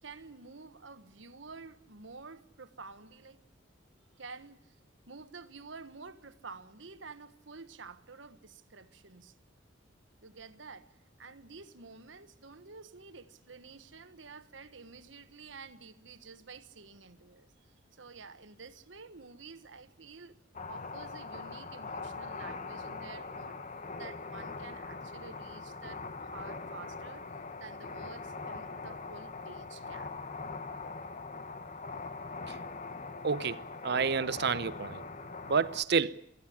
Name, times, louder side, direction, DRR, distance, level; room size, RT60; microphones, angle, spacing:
voice 1, 0.0-3.4 4.2-4.8 5.1-9.4 10.2-20.4 20.7-23.6 24.0-27.3 27.6-30.2, right 4 dB, 75° right, 1.4 m, -50 dB
sound 1, 20.6-35.9, left 3 dB, 40° left, 1.2 m, -42 dB
voice 2, 33.2-35.0 35.4-36.2, right 5 dB, 60° right, 0.8 m, -30 dB
23.0 x 15.0 x 10.0 m
head